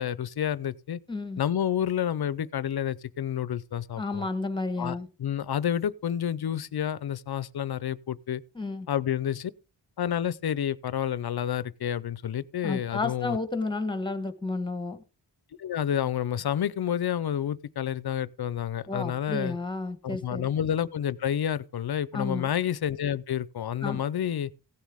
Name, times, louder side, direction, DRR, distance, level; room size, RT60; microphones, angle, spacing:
voice 1, 0.0-1.0 1.4-4.3 4.8-8.4 8.9-9.5 10.0-13.4 15.6-19.6 20.0-24.5, left 9 dB, 55° left, 0.6 m, -29 dB
voice 2, 1.1-1.4 4.0-5.1 8.5-8.9 12.6-15.0 18.9-20.5 22.1-22.5 23.8-24.0, left 3 dB, 10° left, 1.1 m, -31 dB
16.0 x 7.3 x 3.5 m
wide cardioid pair, 135°, 44 cm